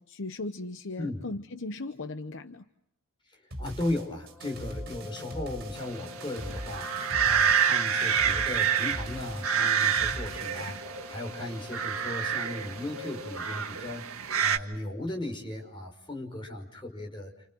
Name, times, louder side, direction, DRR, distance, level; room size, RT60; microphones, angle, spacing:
voice 1, 0.0-2.7, left 2 dB, 60° left, 9 dB, 1.0 m, -37 dB
voice 2, 1.0-1.3 3.6-17.3, left 1 dB, 25° left, 1 dB, 5.7 m, -36 dB
sound 1, 3.5-10.8, right 1 dB, 50° right, 6.4 m, -41 dB
sound 2, 4.2-13.2, left 5 dB, ahead, 1.7 m, -47 dB
sound 3, 5.8-14.6, right 7 dB, 85° right, 1.7 m, -28 dB
30.0 x 28.0 x 6.3 m, 0.78 s
head